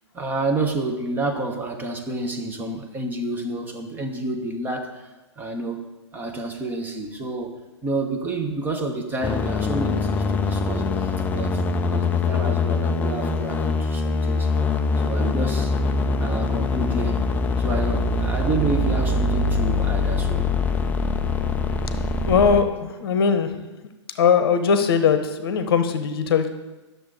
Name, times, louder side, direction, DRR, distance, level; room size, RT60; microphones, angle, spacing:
voice 1, 0.1-5.9 6.1-7.6 7.8-14.5 15.0-15.8 16.2-17.3 17.6-20.5, right 2 dB, 10° right, 3 dB, 1.0 m, -29 dB
sound 1, 9.2-22.6, left 3 dB, 10° left, 0.4 m, -23 dB
voice 2, 22.2-23.5 24.2-26.5, left 6 dB, 50° left, 9 dB, 0.9 m, -20 dB
11.5 x 6.7 x 3.9 m, 1.1 s
figure-of-eight pair, 115°, 15 cm